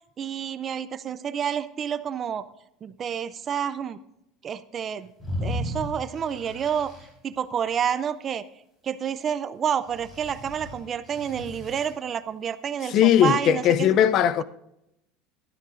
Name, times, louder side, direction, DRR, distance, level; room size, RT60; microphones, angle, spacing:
voice 1, 0.2-2.4 2.8-4.0 4.4-5.1 5.4-6.9 7.2-8.4 8.8-13.9, right 8 dB, 25° right, 0.4 m, -29 dB
sound 1, 5.2-7.1 9.9-11.9, left 1 dB, 15° left, 3.9 m, -35 dB
voice 2, 12.9-14.4, left 10 dB, 35° left, 0.5 m, -19 dB
15.0 x 12.5 x 2.5 m
cardioid pair, 175°, 0 cm